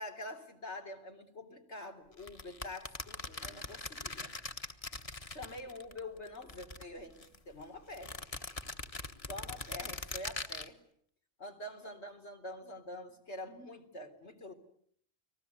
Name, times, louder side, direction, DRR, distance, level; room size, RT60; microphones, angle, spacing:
voice 1, 0.0-4.3 5.3-8.2 9.3-10.8 11.4-14.5, left 1 dB, 85° left, 5 dB, 3.7 m, -46 dB
sound 1, 2.2-6.0 6.3-7.4 7.9-10.7, left 2 dB, 35° left, 1.4 m, -42 dB
30.0 x 20.0 x 9.4 m, 0.68 s
omnidirectional pair, 1.1 m